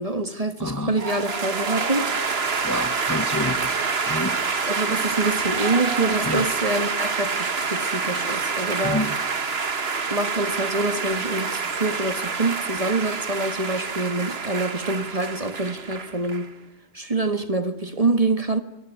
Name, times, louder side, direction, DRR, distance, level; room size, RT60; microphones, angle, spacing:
voice 1, 0.0-2.1 4.7-9.1 10.1-16.5 16.9-18.6, right 2 dB, 30° right, 1.7 m, -26 dB
voice 2, 0.6-1.0 2.6-3.8 4.1-4.4 6.2-6.5 8.8-9.1, left 1 dB, 15° left, 1.1 m, -28 dB
sound 1, 1.0-16.5, right 5 dB, 55° right, 1.7 m, -27 dB
27.0 x 21.5 x 9.4 m
omnidirectional pair, 1.3 m